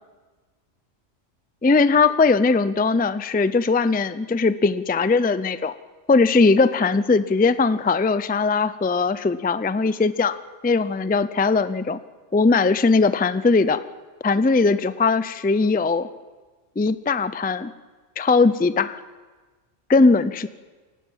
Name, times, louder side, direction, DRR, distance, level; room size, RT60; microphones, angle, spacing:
voice 1, 1.6-5.7 6.1-10.4 10.6-12.0 12.3-13.8 14.2-16.1 16.8-17.7 18.2-19.0 19.9-20.5, left 4 dB, 15° left, 14 dB, 0.3 m, -19 dB
28.5 x 17.5 x 7.5 m, 1.4 s
omnidirectional pair, 1.3 m